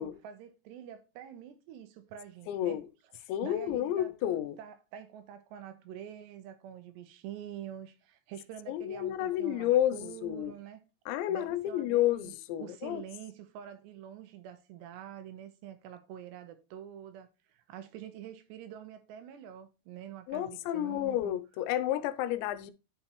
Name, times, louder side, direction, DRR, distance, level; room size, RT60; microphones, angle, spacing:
voice 1, 0.0-2.8 3.1-10.8 11.3-21.4, right 10 dB, 75° right, 2.9 m, -46 dB
voice 2, 2.5-2.9 3.3-4.6 8.7-10.5 11.1-13.0 20.3-22.7, left 12 dB, 80° left, 2.8 m, -31 dB
10.0 x 5.1 x 3.0 m
omnidirectional pair, 5.2 m